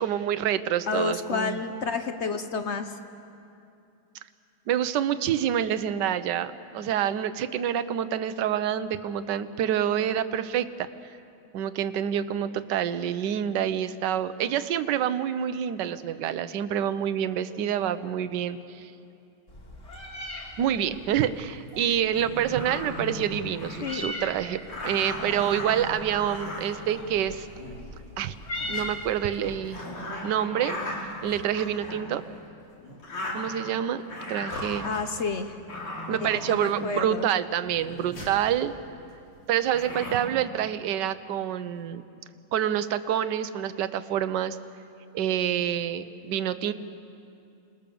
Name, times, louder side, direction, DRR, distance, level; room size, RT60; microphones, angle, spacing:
voice 1, 0.0-1.6 4.7-10.9 11.5-18.9 20.6-27.5 28.2-28.3 28.7-29.8 30.2-30.8 31.2-32.2 33.3-34.0 34.3-34.8 36.1-38.7 39.5-42.0 42.5-44.6 45.1-46.7, right 10 dB, 65° right, 12 dB, 1.3 m, -27 dB
voice 2, 0.9-3.0 23.8-24.1 34.8-35.6 36.1-37.3, left 5 dB, 60° left, 8 dB, 0.7 m, -30 dB
Meow, 19.5-29.6, left 1 dB, 40° left, 3.7 m, -40 dB
sound 1, 21.7-21.8 22.1-24.1 24.7-27.8 28.3-28.8 29.4-32.2 32.8-33.7 34.1-35.2 35.7-36.9 37.6-38.4 39.7-40.2, left 1 dB, 85° left, 4.6 m, -37 dB
27.5 x 20.0 x 7.0 m, 2.6 s
omnidirectional pair, 2.3 m